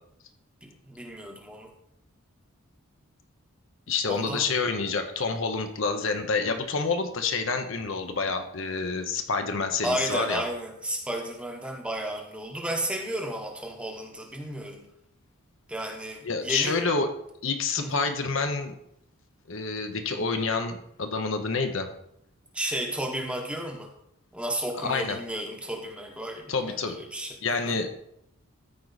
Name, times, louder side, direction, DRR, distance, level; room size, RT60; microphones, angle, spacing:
voice 1, 0.6-1.7 4.1-4.5 9.8-14.8 15.7-16.8 17.8-17.9 22.5-23.9 24.3-27.8, right 1 dB, 5° right, 1 dB, 1.0 m, -33 dB
voice 2, 3.9-10.4 16.2-17.1 17.4-18.7 19.5-21.9 24.7-25.2 26.5-27.0 27.4-27.9, left 4 dB, 60° left, 6 dB, 0.9 m, -28 dB
14.0 x 4.7 x 4.0 m, 0.75 s
head